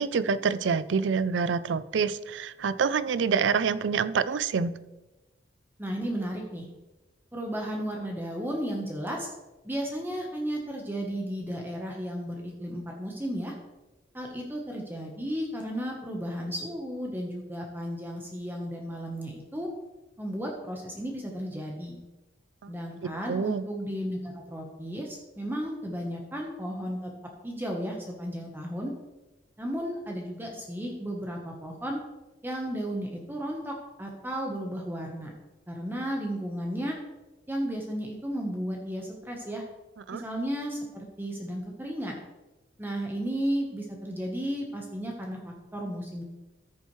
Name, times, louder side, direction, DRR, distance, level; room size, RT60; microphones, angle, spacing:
voice 1, 0.0-4.7 22.6-22.7 23.0-23.6 40.1-40.2, right 6 dB, 85° right, 15 dB, 0.4 m, -27 dB
voice 2, 5.8-6.7 7.3-9.3 9.6-13.5 14.1-19.7 20.2-22.0 22.7-27.1 27.4-28.9 29.6-32.0 32.4-35.3 35.7-37.0 37.5-39.6 40.1-42.2 42.8-46.2, equal, 10° right, 0 dB, 1.1 m, -34 dB
13.5 x 6.9 x 3.1 m, 1.1 s
head